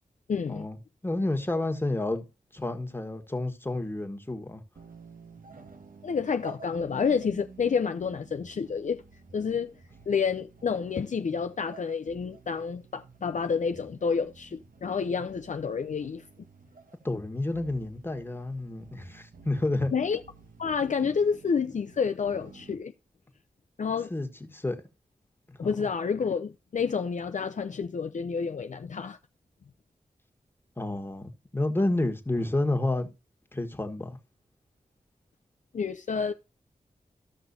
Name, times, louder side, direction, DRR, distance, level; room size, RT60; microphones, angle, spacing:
voice 1, 0.3-0.7 6.0-9.0 9.3-9.7 10.1-16.2 19.9-20.2 20.6-22.9 23.8-24.1 25.6-29.2 35.7-36.3, left 6 dB, 55° left, 0.5 m, -29 dB
voice 2, 1.0-2.2 2.5-4.6 17.0-19.9 24.1-24.8 25.5-25.7 30.8-33.1 33.5-34.2, left 2 dB, 15° left, 1.7 m, -30 dB
sound 1, 4.8-22.7, right 5 dB, 70° right, 1.3 m, -52 dB
14.5 x 5.9 x 2.7 m
wide cardioid pair, 65°, 15 cm